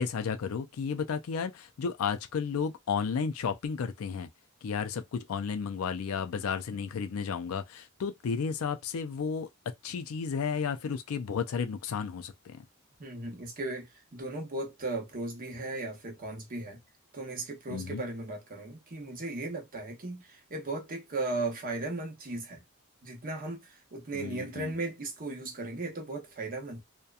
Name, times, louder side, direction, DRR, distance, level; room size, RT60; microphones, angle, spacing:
voice 1, 0.0-4.3 4.6-9.5 9.8-12.6 17.7-18.0 24.1-24.7, left 6 dB, 80° left, 0.4 m, -33 dB
voice 2, 13.0-16.8 17.1-22.6 23.0-26.8, right 2 dB, 40° right, 0.8 m, -36 dB
2.8 x 2.2 x 2.3 m
head